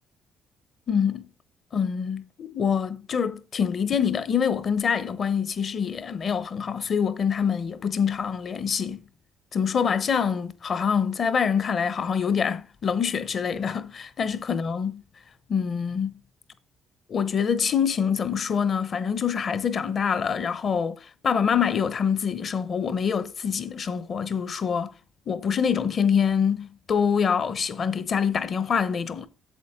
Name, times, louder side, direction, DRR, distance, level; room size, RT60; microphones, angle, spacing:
voice 1, 0.9-1.3 1.7-9.0 9.5-15.0 15.5-16.2 17.1-24.9 25.3-29.3, left 7 dB, 35° left, 0.8 m, -25 dB
8.3 x 7.7 x 3.6 m
cardioid pair, 155°, 0 cm